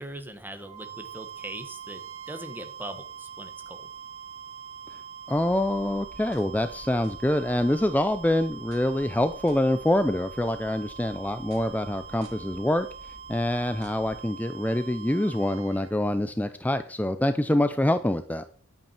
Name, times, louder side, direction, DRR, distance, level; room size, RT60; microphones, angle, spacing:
voice 1, 0.0-2.0 2.3-3.9, right 1 dB, 10° right, 7 dB, 1.4 m, -40 dB
sound 1, 0.6-15.9, right 7 dB, 80° right, 2.5 m, -43 dB
voice 2, 5.3-12.9 13.3-18.4, left 1 dB, 5° left, 10 dB, 0.5 m, -25 dB
sound 2, 5.3-14.2, equal, 60° right, 2.7 m, -51 dB
10.5 x 8.9 x 4.4 m, 0.42 s
head